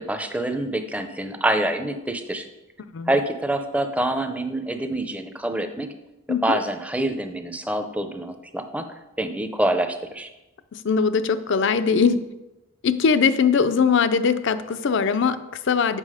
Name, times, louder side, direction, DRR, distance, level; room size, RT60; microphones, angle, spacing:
voice 1, 0.0-2.5 3.1-5.9 6.3-8.9 9.2-10.3, right 1 dB, 5° right, 7 dB, 0.5 m, -26 dB
voice 2, 10.7-12.2 12.8-16.0, left 5 dB, 65° left, 12 dB, 0.5 m, -21 dB
7.5 x 5.7 x 4.9 m, 0.99 s
head